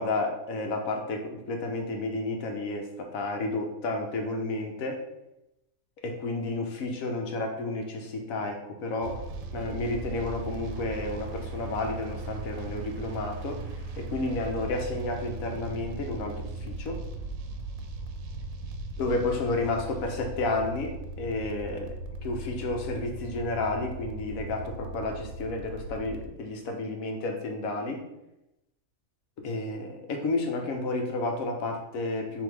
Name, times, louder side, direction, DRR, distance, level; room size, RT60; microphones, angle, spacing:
voice 1, 0.0-5.0 6.0-9.2 9.5-13.6 14.0-17.0 19.0-28.0 29.4-32.4, left 2 dB, 85° left, 3 dB, 1.2 m, -31 dB
sound 1, 9.0-26.3, right 3 dB, 80° right, 1.0 m, -38 dB
3.5 x 2.7 x 4.6 m, 0.89 s
omnidirectional pair, 1.4 m